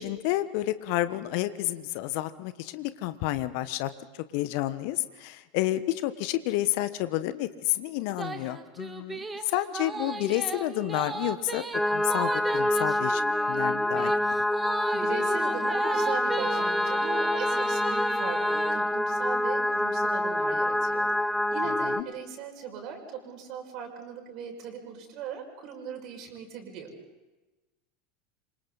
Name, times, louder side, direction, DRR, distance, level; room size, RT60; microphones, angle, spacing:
voice 1, 0.0-3.9 4.3-11.6 11.9-13.2 13.5-14.1 21.8-22.0, left 15 dB, 55° left, 13 dB, 1.2 m, -30 dB
sound 1, 8.1-18.8, right 3 dB, 15° right, 1.9 m, -36 dB
sound 2, 11.7-22.0, left 1 dB, 5° left, 0.8 m, -26 dB
voice 2, 14.9-26.9, right 6 dB, 45° right, 2 dB, 5.8 m, -39 dB
28.0 x 25.0 x 4.1 m, 1.1 s
figure-of-eight pair, 80°, 0 cm